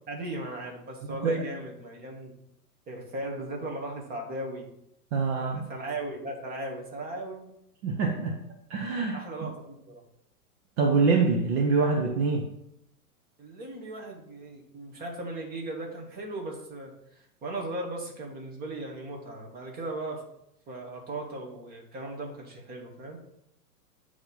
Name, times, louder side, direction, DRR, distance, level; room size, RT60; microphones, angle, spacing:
voice 1, 0.1-2.3 2.9-4.7 5.3-7.5 9.1-10.0 13.4-20.2 20.7-23.2, right 2 dB, 20° right, 0 dB, 1.6 m, -37 dB
voice 2, 1.1-1.4 5.1-5.6 7.8-8.4 8.7-9.2 10.8-12.4, right 4 dB, 45° right, 1 dB, 1.0 m, -25 dB
8.8 x 3.3 x 5.7 m, 0.78 s
hypercardioid pair, 130°, 47 cm